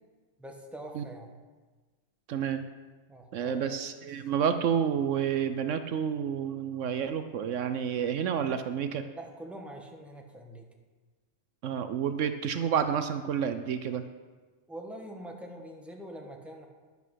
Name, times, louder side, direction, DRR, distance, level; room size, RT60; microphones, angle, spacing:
voice 1, 0.4-1.3 3.1-3.8 9.1-10.7 14.7-16.7, right 1 dB, ahead, 1 dB, 1.3 m, -44 dB
voice 2, 2.3-2.6 3.3-9.1 11.6-14.0, right 8 dB, 75° right, 9 dB, 1.0 m, -29 dB
10.5 x 8.3 x 6.3 m, 1.3 s
omnidirectional pair, 1.3 m